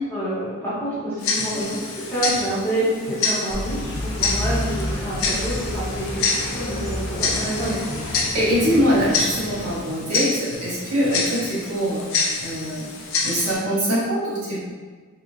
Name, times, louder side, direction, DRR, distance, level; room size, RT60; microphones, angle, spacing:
voice 1, 0.1-7.8, right 1 dB, 10° left, -11 dB, 1.3 m, -28 dB
Tick-tock, 1.2-13.5, left 4 dB, 65° left, 0.6 m, -28 dB
sound 1, 3.5-9.8, equal, 85° left, 0.9 m, -30 dB
voice 2, 7.4-12.0 12.4-12.8 13.2-14.6, equal, 80° right, -8 dB, 1.2 m, -23 dB
3.9 x 3.0 x 2.4 m, 1.5 s
head